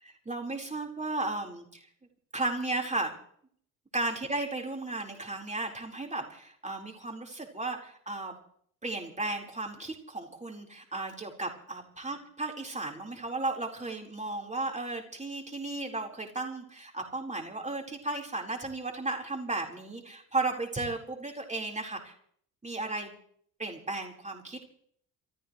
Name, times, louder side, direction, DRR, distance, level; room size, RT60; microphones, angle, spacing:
voice 1, 0.2-1.8 2.3-3.1 3.9-8.4 8.8-22.1 22.6-23.1 23.6-24.6, right 2 dB, 15° right, 1 dB, 4.5 m, -34 dB
27.5 x 13.5 x 3.3 m, 0.63 s
figure-of-eight pair, 55°, 46 cm